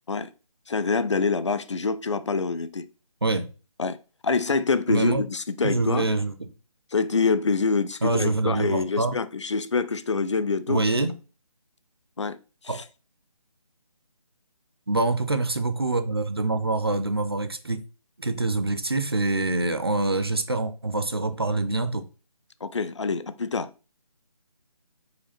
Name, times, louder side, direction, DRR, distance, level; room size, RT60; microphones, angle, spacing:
voice 1, 0.7-2.9 3.8-4.0 4.2-6.1 6.9-10.8 12.2-12.4 12.6-12.8 22.6-23.7, left 4 dB, 50° left, 0.4 m, -26 dB
voice 2, 4.9-5.2 5.6-6.5 8.0-9.1 10.7-11.1 12.7-12.8 14.9-17.8 18.2-22.1, right 2 dB, 40° right, 0.5 m, -25 dB
4.9 x 2.5 x 4.2 m
figure-of-eight pair, 180°, 19 cm